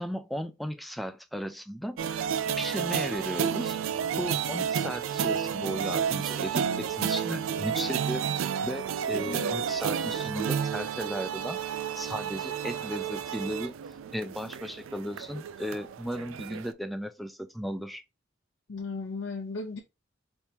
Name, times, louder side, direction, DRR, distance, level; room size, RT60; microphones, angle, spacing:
voice 1, 0.0-2.3 2.6-3.8 4.2-8.2 8.6-11.6 11.9-13.7 14.1-18.0, equal, ahead, 0.3 m, -35 dB
sound 1, 2.0-16.7, right 8 dB, 90° right, 0.3 m, -31 dB
voice 2, 18.7-19.8, left 3 dB, 65° left, 0.7 m, -36 dB
4.4 x 2.8 x 3.4 m
head